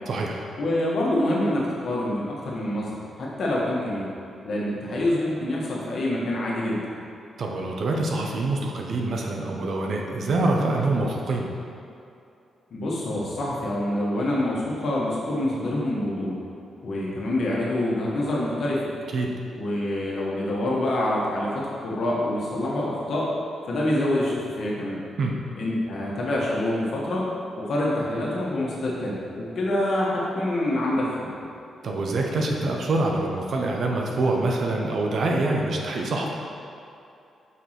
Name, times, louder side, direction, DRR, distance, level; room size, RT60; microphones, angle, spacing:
voice 1, 0.1-0.4 7.4-11.5 19.1-19.4 25.2-25.4 31.8-36.3, right 2 dB, 55° right, 0 dB, 0.9 m, -25 dB
voice 2, 0.6-4.1 4.4-6.8 12.7-16.3 16.8-18.8 19.5-23.3 23.7-25.0 25.5-27.3 27.6-31.3, left 1 dB, 55° left, -5 dB, 1.7 m, -26 dB
5.8 x 4.8 x 5.9 m, 2.6 s
wide cardioid pair, 140°, 0 cm